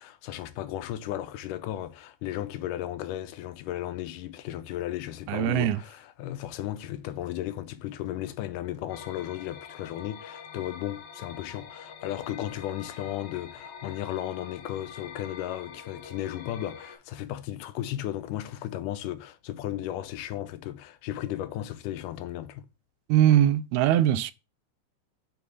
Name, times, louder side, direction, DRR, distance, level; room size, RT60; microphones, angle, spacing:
voice 1, 0.0-22.7, left 13 dB, 85° left, 2.2 m, -35 dB
voice 2, 5.3-5.8 23.1-24.3, right 11 dB, 80° right, 1.8 m, -21 dB
sound 1, 8.9-17.0, left 6 dB, 70° left, 2.5 m, -45 dB
6.7 x 3.4 x 5.4 m
omnidirectional pair, 3.6 m